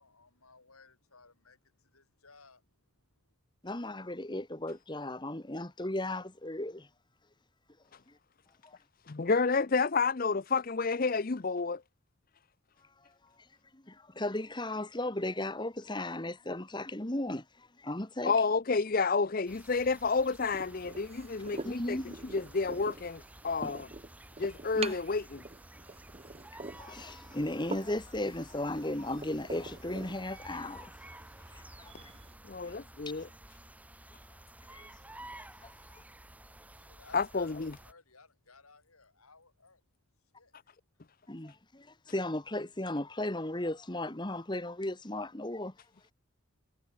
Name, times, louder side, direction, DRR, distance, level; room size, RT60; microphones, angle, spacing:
voice 1, 0.0-3.3 36.1-39.8 40.3-40.7, left 4 dB, 90° left, 7.9 m, -60 dB
voice 2, 3.6-6.9 8.1-8.2 8.6-8.8 13.7-18.3 21.6-22.1 23.6-23.7 24.7-24.9 26.8-30.9 31.5-31.9 33.1-33.2 34.7-34.9 35.3-36.0 41.3-45.7, left 1 dB, 20° left, 1.4 m, -36 dB
voice 3, 9.1-11.8 18.2-23.9 24.4-25.4 31.9-32.0 32.5-33.3 37.1-37.7, left 4 dB, 40° left, 0.6 m, -30 dB
sound 1, 19.5-37.9, right 1 dB, 5° right, 2.4 m, -52 dB
sound 2, 20.5-32.3, right 3 dB, 30° right, 0.9 m, -47 dB
head